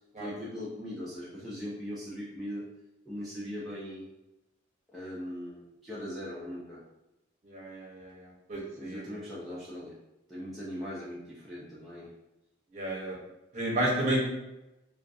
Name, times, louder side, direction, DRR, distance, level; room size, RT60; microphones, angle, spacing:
voice 1, 0.2-2.7 3.0-4.1 4.9-6.8 8.8-10.0 10.3-12.1, equal, ahead, -9 dB, 0.4 m, -40 dB
voice 2, 7.4-9.0 12.7-13.2 13.5-14.2, right 1 dB, 35° right, -4 dB, 0.7 m, -31 dB
2.4 x 2.3 x 2.5 m, 0.96 s
head